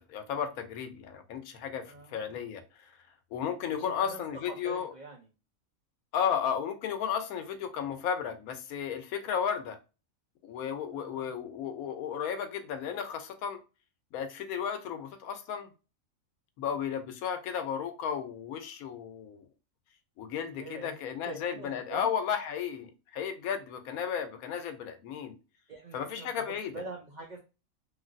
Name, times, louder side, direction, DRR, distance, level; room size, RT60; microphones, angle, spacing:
voice 1, 0.1-2.9 3.3-4.9 6.1-9.8 10.4-13.6 14.1-15.7 16.6-19.5 20.2-25.4 25.9-26.7, left 8 dB, 85° left, 1.1 m, -34 dB
voice 2, 1.8-2.4 3.7-4.2 4.5-5.3 10.9-11.3 20.5-21.0 21.2-22.1 25.7-26.3 26.7-27.4, right 3 dB, 65° right, 0.4 m, -45 dB
3.1 x 2.5 x 2.5 m
omnidirectional pair, 1.5 m